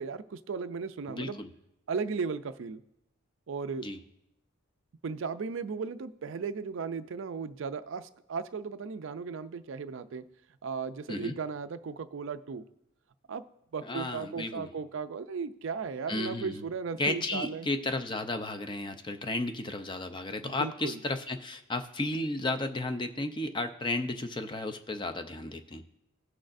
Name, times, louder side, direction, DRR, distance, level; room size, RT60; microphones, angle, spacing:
voice 1, 0.0-1.4 1.9-2.8 3.5-3.9 5.0-10.2 10.6-12.6 13.3-13.4 13.7-17.7 20.4-21.0, right 5 dB, 60° right, 12 dB, 0.4 m, -36 dB
voice 2, 1.1-1.5 3.8-4.0 11.1-11.3 13.8-14.7 16.1-16.6 17.0-25.8, left 2 dB, 20° left, 7 dB, 0.5 m, -33 dB
17.0 x 6.3 x 2.6 m, 0.82 s
head